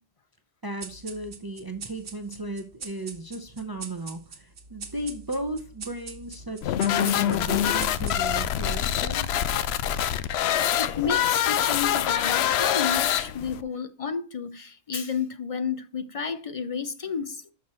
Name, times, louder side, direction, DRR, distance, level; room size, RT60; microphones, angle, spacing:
voice 1, 0.6-9.4, right 2 dB, 25° right, 0.6 m, -35 dB
sound 1, 0.8-8.6, right 5 dB, 85° right, 1.3 m, -43 dB
sound 2, 6.6-13.6, left 10 dB, 80° left, 0.8 m, -25 dB
voice 2, 10.8-17.4, left 6 dB, 45° left, 0.4 m, -31 dB
6.3 x 5.8 x 4.2 m
omnidirectional pair, 1.1 m